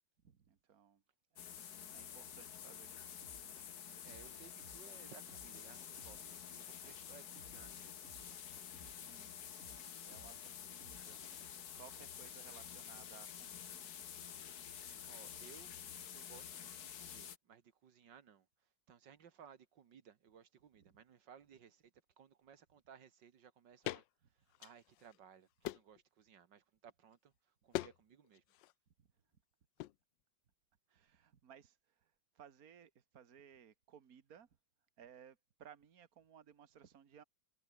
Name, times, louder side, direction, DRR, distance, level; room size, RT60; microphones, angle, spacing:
voice 1, 0.2-1.0 1.8-3.1 8.3-9.4 10.0-13.9 16.2-16.3 20.8-21.0 24.2-24.3 29.0-29.1 30.9-34.5 35.0-37.2, right 8 dB, 55° right, 2.0 m, -61 dB
sound 1, 1.4-17.4, left 9 dB, 60° left, 1.7 m, -50 dB
sound 2, 3.2-11.5, right 1 dB, 35° right, 7.0 m, -63 dB
voice 2, 4.0-8.0 15.1-15.7 16.1-18.5 18.9-24.0 24.3-28.4, right 8 dB, 80° right, 2.1 m, -61 dB
sound 3, 23.8-24.1 24.5-25.2 25.6-26.0 27.7-28.0 28.2-28.7 29.8-30.0, left 16 dB, 85° left, 1.3 m, -42 dB
omnidirectional pair, 1.9 m